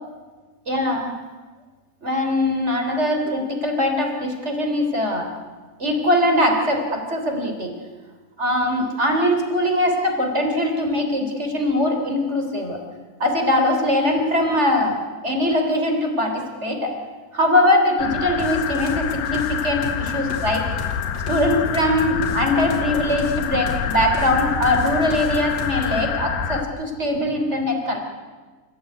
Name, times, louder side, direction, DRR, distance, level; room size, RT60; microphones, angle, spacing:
voice 1, 0.7-1.1 2.0-5.3 5.8-7.7 8.4-12.8 13.2-15.0 15.2-16.9 17.3-20.7 21.3-28.0, left 1 dB, 15° right, 4 dB, 3.0 m, -21 dB
sound 1, 18.0-26.6, left 8 dB, 70° left, 3.8 m, -27 dB
sound 2, 18.4-26.1, left 5 dB, 35° left, 4.1 m, -33 dB
29.5 x 16.0 x 9.5 m, 1.4 s
omnidirectional pair, 5.7 m